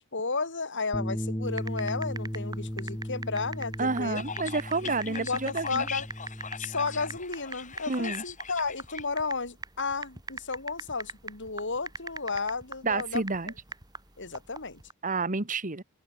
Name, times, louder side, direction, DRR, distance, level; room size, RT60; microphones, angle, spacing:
voice 1, 0.0-4.2 4.8-6.1 6.6-13.2 14.2-14.8, left 4 dB, 55° left, 5.3 m, -33 dB
Bass guitar, 0.9-7.2, equal, 10° left, 2.3 m, -36 dB
sound 1, 1.5-14.9, right 3 dB, 20° right, 5.4 m, -41 dB
voice 2, 3.8-5.9 7.9-8.2 12.8-13.5 15.0-15.8, right 3 dB, 35° right, 1.7 m, -29 dB
sound 2, 4.2-9.0, left 6 dB, 35° left, 7.8 m, -40 dB
open air
head